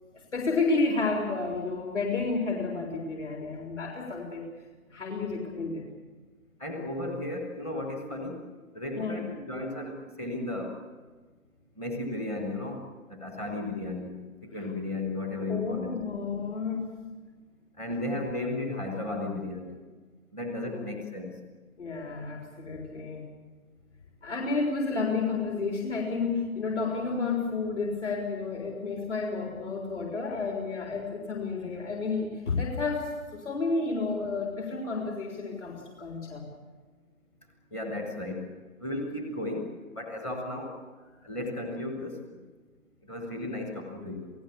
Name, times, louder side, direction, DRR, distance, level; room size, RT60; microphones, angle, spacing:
voice 1, 0.3-4.4 4.9-5.9 9.0-9.2 15.5-16.9 20.6-20.9 21.8-23.3 24.2-36.4, left 4 dB, 55° left, 0 dB, 4.1 m, -31 dB
voice 2, 6.6-8.4 8.7-10.8 11.8-12.8 13.1-15.9 17.8-19.8 20.3-21.4 37.7-38.5 38.8-40.8 41.2-42.4 43.0-44.3, left 2 dB, 5° left, 3 dB, 1.1 m, -34 dB
27.5 x 18.0 x 7.0 m, 1.4 s
figure-of-eight pair, 150°, 43 cm